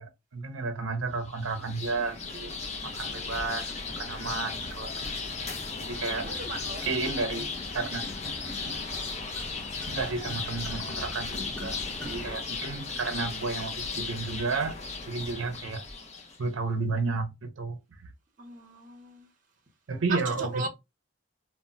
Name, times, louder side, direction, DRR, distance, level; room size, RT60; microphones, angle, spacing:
voice 1, 0.0-2.5 2.8-5.0 5.8-6.2 6.8-8.0 9.9-11.8 12.0-14.8 15.1-15.8 16.4-18.1 19.9-20.7, right 4 dB, 80° right, 0.6 m, -32 dB
sound 1, 1.3-16.4, left 4 dB, 35° left, 0.5 m, -36 dB
sound 2, 1.3-1.6 1.9-12.4, left 1 dB, 5° left, 0.7 m, -44 dB
sound 3, 3.8-14.0, equal, 65° left, 0.7 m, -53 dB
voice 2, 6.2-6.8 18.4-19.3 20.1-20.7, right 3 dB, 40° right, 0.7 m, -36 dB
2.1 x 2.1 x 3.7 m
head